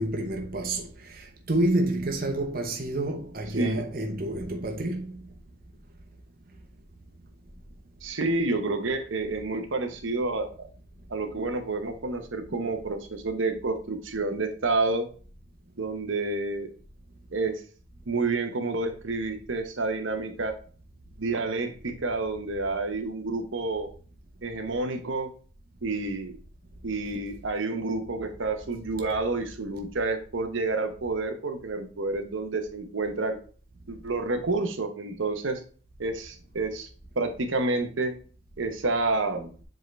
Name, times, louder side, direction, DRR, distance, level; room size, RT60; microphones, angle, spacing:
voice 1, 0.0-5.1, right 1 dB, 45° right, 1.0 m, -29 dB
voice 2, 8.0-10.5 11.1-15.1 15.8-16.7 17.3-17.6 18.1-20.6 21.2-23.9 24.4-25.3 25.8-26.4 26.8-33.4 33.9-35.6 36.0-36.9 37.2-38.1 38.6-39.5, right 3 dB, 80° right, 1.0 m, -29 dB
7.6 x 3.8 x 3.2 m
head